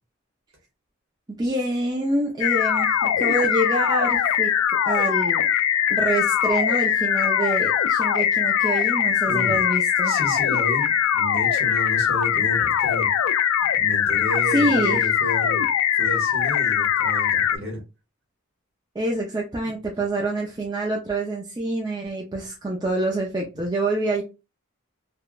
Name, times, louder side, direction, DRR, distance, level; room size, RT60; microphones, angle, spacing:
voice 1, 1.4-5.5 5.9-10.2 14.5-15.1 18.9-24.2, right 1 dB, 20° right, 0.4 m, -26 dB
sound 1, 2.4-17.6, left 9 dB, 85° left, 0.3 m, -21 dB
voice 2, 9.3-9.6 10.0-13.1 13.7-15.6 15.9-17.8, equal, 55° right, 1.4 m, -31 dB
3.3 x 2.1 x 2.3 m
head